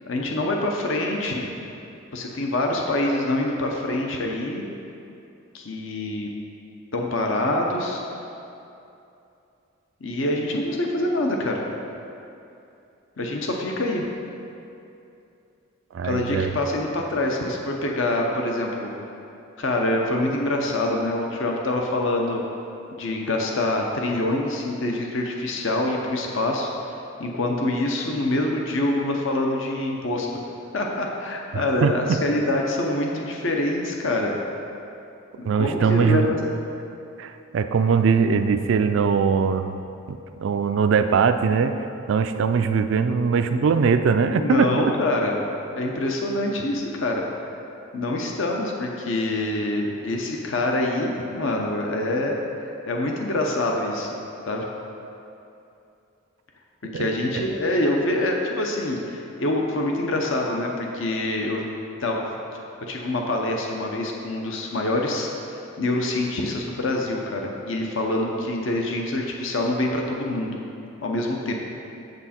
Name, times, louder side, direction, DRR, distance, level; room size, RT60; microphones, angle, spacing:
voice 1, 0.1-1.4 2.1-4.6 5.5-6.3 6.9-8.0 10.0-11.6 13.2-14.0 16.0-18.9 19.6-22.4 22.9-30.3 30.7-34.3 35.3-36.5 44.3-45.3 45.7-47.2 47.9-52.4 52.6-54.2 54.5-54.7 56.9-61.6 62.0-62.2 62.5-62.6 62.9-70.6 71.0-71.5, left 1 dB, 60° left, 1 dB, 0.8 m, -25 dB
voice 2, 15.9-16.5 31.5-32.0 35.4-36.3 37.2-39.7 40.1-41.8 42.1-44.7 56.9-57.1, right 5 dB, 60° right, 8 dB, 0.3 m, -21 dB
8.0 x 7.2 x 4.3 m, 2.7 s
head